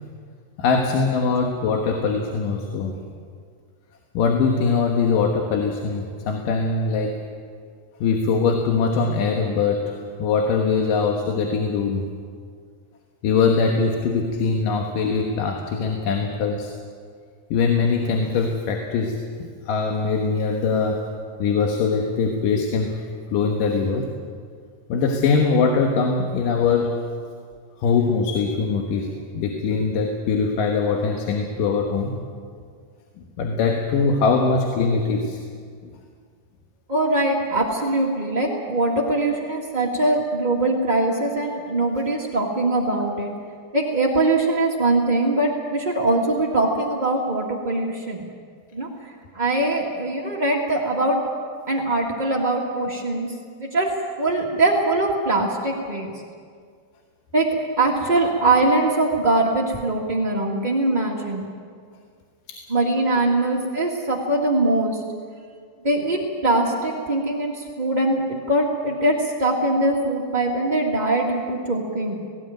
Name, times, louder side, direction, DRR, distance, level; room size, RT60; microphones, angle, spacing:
voice 1, 0.6-2.9 4.1-7.2 8.0-12.0 13.2-16.7 17.5-19.2 19.7-21.1 21.4-23.0 23.3-24.1 24.9-27.0 27.8-32.2 33.4-35.4 62.5-62.6, left 4 dB, 75° left, 2 dB, 3.0 m, -22 dB
voice 2, 36.9-43.3 43.7-48.2 48.7-51.2 51.7-53.3 53.6-53.9 54.2-56.1 57.3-61.5 62.7-65.0 65.8-72.2, right 2 dB, 30° right, -2 dB, 0.7 m, -22 dB
18.5 x 17.0 x 9.2 m, 2.1 s
omnidirectional pair, 3.9 m